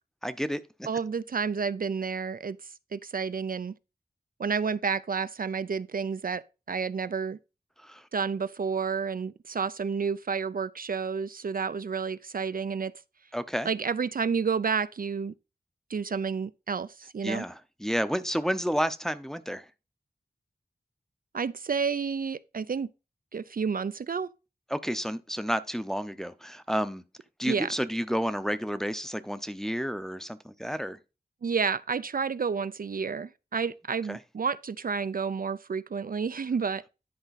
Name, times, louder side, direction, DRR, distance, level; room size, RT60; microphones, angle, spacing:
voice 1, 0.2-0.9 7.8-8.0 13.3-13.7 17.2-19.6 24.7-27.0 27.4-31.0 34.1-34.2, equal, 5° left, 0.7 m, -31 dB
voice 2, 0.9-2.6 2.9-3.7 4.4-6.4 6.7-7.4 8.1-12.9 13.6-15.3 15.9-17.5 21.3-22.9 23.3-24.3 27.4-27.7 31.4-36.8, right 5 dB, 60° right, 0.4 m, -30 dB
10.5 x 5.0 x 4.1 m
wide cardioid pair, 70°, 16 cm